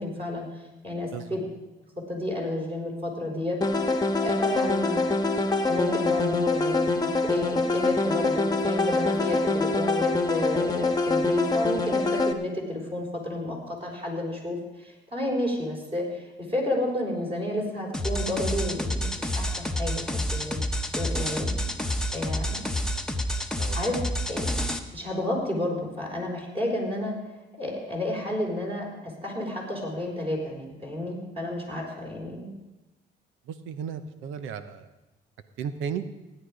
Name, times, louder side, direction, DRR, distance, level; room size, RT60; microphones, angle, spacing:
voice 1, 0.0-1.4 2.1-3.9 4.2-5.0 5.7-6.9 7.2-20.6 21.0-21.5 22.1-22.6 23.7-23.9 24.3-24.5 24.9-27.1 27.6-32.5, left 1 dB, 30° right, -1 dB, 4.5 m, -31 dB
sound 1, 3.6-12.3, left 2 dB, 20° left, 1.2 m, -25 dB
sound 2, 17.9-24.8, equal, 5° left, 1.1 m, -29 dB
voice 2, 33.5-34.9 35.6-36.0, right 7 dB, 90° right, 10 dB, 0.8 m, -34 dB
16.5 x 9.9 x 4.9 m, 1.0 s
cardioid pair, 90°, 20 cm